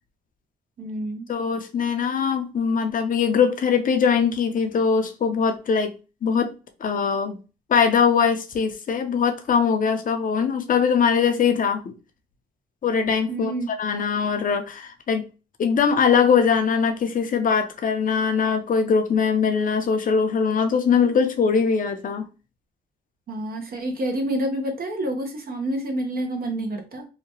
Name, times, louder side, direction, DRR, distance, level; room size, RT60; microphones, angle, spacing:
voice 1, 0.8-1.3 13.3-13.7 23.3-27.1, right 1 dB, 50° right, 0.8 m, -28 dB
voice 2, 1.3-5.9 6.2-6.5 6.8-7.4 7.7-11.9 12.8-13.5 13.8-15.3 15.6-22.3, left 6 dB, 45° left, 0.6 m, -21 dB
2.8 x 2.2 x 2.8 m
cardioid pair, 90°, 20 cm